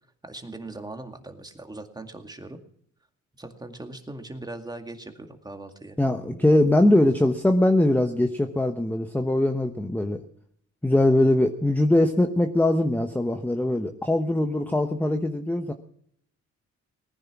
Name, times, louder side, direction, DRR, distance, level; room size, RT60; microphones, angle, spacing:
voice 1, 0.2-2.6 3.4-6.0, right 2 dB, 15° right, 5 dB, 2.1 m, -40 dB
voice 2, 6.0-10.2 10.8-15.7, left 1 dB, 5° left, 6 dB, 1.0 m, -22 dB
19.0 x 10.0 x 6.0 m, 0.68 s
cardioid pair, 90°, 30 cm